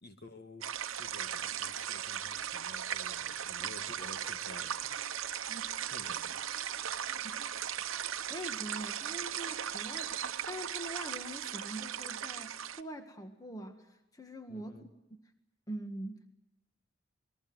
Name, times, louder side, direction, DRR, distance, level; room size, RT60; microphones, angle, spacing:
voice 1, 0.0-5.4 5.9-6.4 14.5-14.9, left 2 dB, 50° left, 7 dB, 1.9 m, -52 dB
sound 1, 0.6-12.8, right 9 dB, 75° right, 0.9 m, -37 dB
voice 2, 8.3-13.9 14.1-14.8 15.7-16.3, right 1 dB, 15° left, 6 dB, 1.7 m, -43 dB
27.5 x 21.0 x 7.9 m, 0.89 s
head